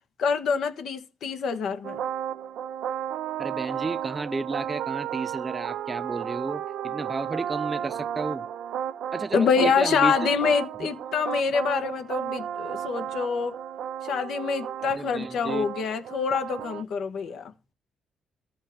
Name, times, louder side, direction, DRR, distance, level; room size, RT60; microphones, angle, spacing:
voice 1, 0.2-2.0 9.3-13.5 14.0-17.5, left 6 dB, 70° left, 1.0 m, -26 dB
sound 1, 1.8-16.8, right 10 dB, 75° right, 0.5 m, -33 dB
voice 2, 3.4-8.5 9.1-10.1 10.8-10.9 14.8-15.7, right 3 dB, 25° right, 0.5 m, -32 dB
13.0 x 4.4 x 6.4 m
cardioid pair, 90°, 0 cm